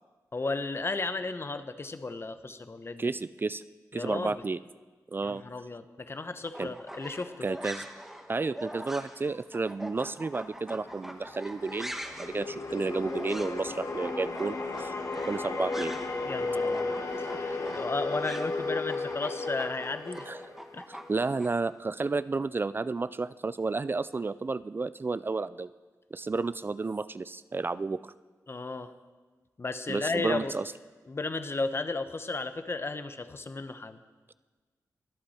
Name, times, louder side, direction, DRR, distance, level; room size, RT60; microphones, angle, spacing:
voice 1, 0.3-3.2 3.9-4.4 5.2-7.5 16.2-20.3 20.7-20.8 28.5-28.9 29.6-30.5 31.1-34.0, left 3 dB, 40° left, 10 dB, 0.9 m, -34 dB
voice 2, 3.0-3.6 3.9-4.6 5.1-5.4 6.6-6.7 7.4-7.9 8.3-14.9 15.2-15.9 20.3-20.6 20.9-25.7 26.1-28.1 29.9-30.6, right 3 dB, 35° right, 16 dB, 0.3 m, -32 dB
sound 1, 6.4-16.2 16.5-21.5, equal, 5° right, 1.2 m, -43 dB
sound 2, 10.7-21.1, left 3 dB, 60° left, 1.9 m, -34 dB
22.5 x 8.6 x 4.3 m, 1.3 s
cardioid pair, 70°, 7 cm